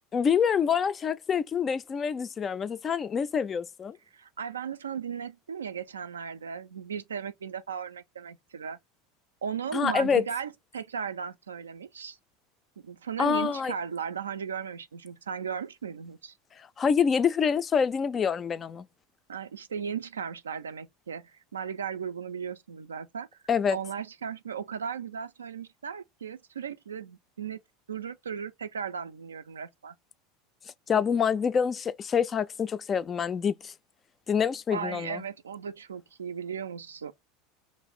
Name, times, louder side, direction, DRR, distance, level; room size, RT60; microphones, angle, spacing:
voice 1, 0.1-4.0 9.7-10.2 13.2-13.7 16.8-18.9 23.5-23.8 30.9-33.7 34.3-35.2, left 7 dB, 25° left, 0.3 m, -26 dB
voice 2, 4.1-8.8 9.4-12.2 12.8-16.3 19.3-23.3 23.7-27.6 27.9-29.9 34.7-37.1, right 7 dB, 75° right, 0.3 m, -36 dB
3.0 x 2.5 x 3.5 m
figure-of-eight pair, 75°, 0 cm